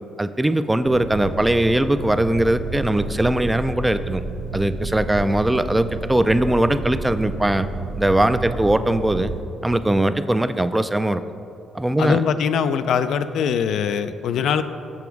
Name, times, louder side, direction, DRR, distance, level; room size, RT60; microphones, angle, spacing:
voice 1, 0.2-4.2 4.5-7.7 8.0-9.3 9.6-11.2 11.7-12.2, right 1 dB, 10° right, 11 dB, 0.3 m, -20 dB
sound 1, 0.8-9.4, right 3 dB, 85° right, 0.6 m, -31 dB
voice 2, 12.0-14.6, left 7 dB, 75° left, 10 dB, 0.3 m, -22 dB
7.1 x 5.9 x 4.6 m, 2.7 s
cardioid pair, 90°, 0 cm